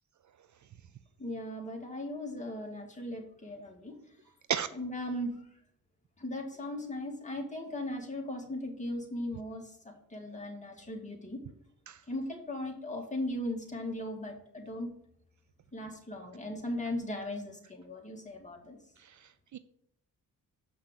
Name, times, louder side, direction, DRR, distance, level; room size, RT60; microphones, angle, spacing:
voice 1, 1.2-4.2 4.7-5.4 6.2-11.4 12.1-14.9 15.7-18.8, left 1 dB, 20° left, 1 dB, 2.3 m, -38 dB
voice 2, 19.0-19.6, right 8 dB, 55° right, 13 dB, 0.5 m, -34 dB
7.4 x 5.8 x 6.7 m, 0.70 s
cardioid pair, 105°, 35 cm